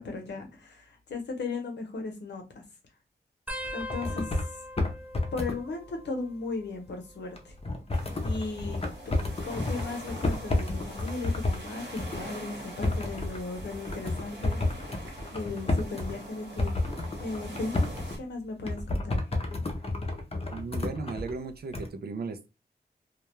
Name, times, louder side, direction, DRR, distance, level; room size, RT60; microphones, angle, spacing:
voice 1, 0.0-2.6 3.7-4.5 5.3-7.5 8.2-15.0 15.3-16.8 17.2-17.9 18.2-19.4, left 3 dB, 85° left, 0.8 m, -37 dB
sound 1, 3.5-6.7 6.9-7.5 8.5-10.0 10.6-11.0 12.2-12.5 14.0-14.1, equal, 10° right, 0.5 m, -43 dB
sound 2, 3.6-4.5 4.8-5.6 7.4-11.6 12.0-12.2 12.7-16.2 16.6-18.2 18.6-21.3 21.7-21.9, left 2 dB, 35° left, 0.6 m, -30 dB
sound 3, 7.9-18.2, right 1 dB, 85° right, 1.1 m, -44 dB
voice 2, 20.5-22.5, right 4 dB, 65° right, 0.5 m, -36 dB
2.3 x 2.2 x 3.0 m
wide cardioid pair, 70°, 18 cm